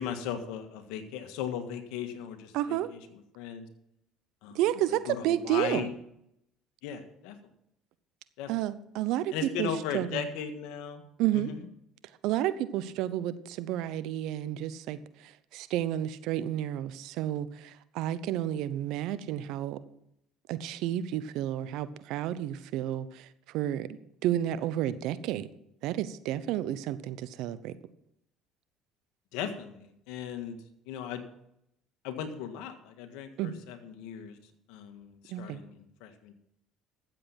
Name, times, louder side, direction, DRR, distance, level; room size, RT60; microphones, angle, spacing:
voice 1, 0.0-3.0 3.3-3.7 4.4-4.6 5.1-5.9 6.8-7.3 8.4-8.5 9.3-11.0 11.3-11.6 29.3-30.6 30.9-31.2 32.0-34.4 34.7-36.3, left 8 dB, 75° left, 7 dB, 1.7 m, -37 dB
voice 2, 2.5-2.9 4.5-5.9 8.5-9.3 9.6-10.3 11.2-11.5 12.2-19.8 20.5-23.3 23.5-23.9 24.2-25.5 25.8-27.7 33.4-33.5 35.3-35.6, right 12 dB, 70° right, 15 dB, 0.8 m, -31 dB
13.5 x 7.7 x 5.8 m, 0.77 s
supercardioid pair, 75°, 0 cm